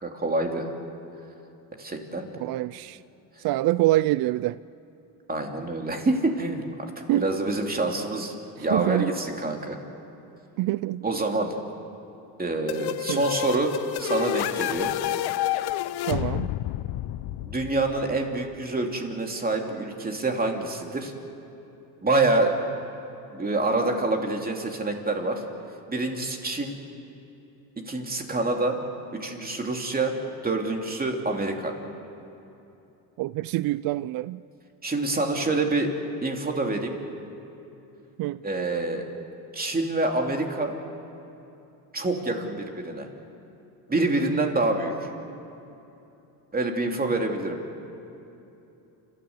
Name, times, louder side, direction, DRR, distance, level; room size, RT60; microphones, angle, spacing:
voice 1, 0.0-0.7 1.8-2.3 5.3-9.8 11.0-11.5 12.4-15.0 17.4-21.1 22.0-22.5 23.3-25.4 25.9-26.8 27.8-28.8 29.1-30.1 30.4-31.7 34.8-35.9 36.2-37.0 38.4-39.0 39.5-40.7 41.9-43.1 43.9-45.1 46.5-47.6, right 2 dB, 20° right, 3.0 m, -26 dB
voice 2, 2.4-3.0 3.4-4.6 7.1-7.3 8.7-9.1 10.6-11.0 13.1-13.2 16.1-16.5 33.2-34.4 38.2-38.4, right 17 dB, 50° right, 0.5 m, -25 dB
sound 1, 12.7-18.3, left 14 dB, 55° left, 0.8 m, -29 dB
29.5 x 14.0 x 8.1 m
supercardioid pair, 100°, 47 cm